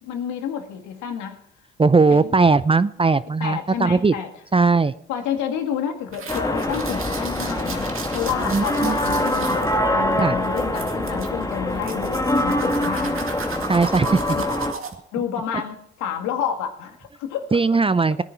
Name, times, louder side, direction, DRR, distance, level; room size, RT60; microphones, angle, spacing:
voice 1, 0.0-1.4 2.1-2.3 3.4-4.3 5.1-13.3 15.1-17.5, left 8 dB, 75° left, 5 dB, 2.0 m, -29 dB
voice 2, 1.8-4.1 4.5-4.9 8.5-9.0 10.2-10.4 13.7-14.4 17.5-18.2, right 4 dB, 20° right, 16 dB, 0.6 m, -18 dB
sound 1, 6.1-14.9, right 5 dB, 45° right, 2.2 m, -36 dB
sound 2, 6.3-14.7, left 1 dB, 10° left, 1.5 m, -24 dB
18.0 x 9.9 x 4.6 m, 0.72 s
hypercardioid pair, 60°, 30 cm